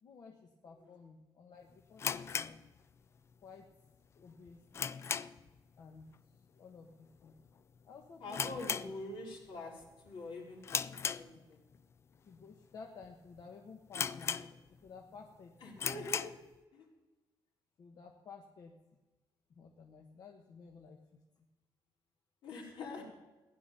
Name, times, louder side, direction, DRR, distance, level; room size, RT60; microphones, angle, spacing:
voice 1, 0.0-2.6 3.4-3.7 4.2-4.6 5.8-6.1 6.5-7.3 7.8-8.9 11.3-11.4 12.2-15.5 15.8-15.9 17.8-18.8 19.5-21.0 21.4-21.5, left 5 dB, 50° left, 2 dB, 1.2 m, -54 dB
sound 1, 2.0-3.3 3.6-3.7 4.2-5.6 5.9-6.2 6.4-6.5 7.2-7.5 7.8-7.9 8.3-9.5 9.8-10.1 10.6-11.8 12.3-12.4 13.0-13.1 13.4-13.5 13.9-14.9 15.3-15.4 15.7-16.5, left 6 dB, 30° left, 0.3 m, -37 dB
voice 2, 8.2-11.6 15.6-16.2 16.7-16.9 22.4-23.1, left 2 dB, 75° left, -2 dB, 3.9 m, -45 dB
16.0 x 11.0 x 5.5 m, 1.2 s
wide cardioid pair, 175°, 8 cm